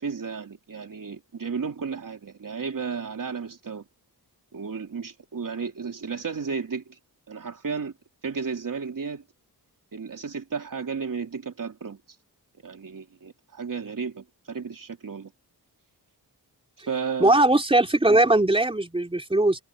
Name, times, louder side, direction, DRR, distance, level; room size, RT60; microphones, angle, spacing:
voice 1, 0.0-3.9 4.5-7.0 7.3-7.9 8.2-9.2 9.9-12.0 12.6-15.3 16.9-17.4, right 5 dB, 55° right, 3.5 m, -33 dB
voice 2, 17.2-19.6, right 2 dB, 15° right, 3.6 m, -20 dB
wide cardioid pair, 110°, 39 cm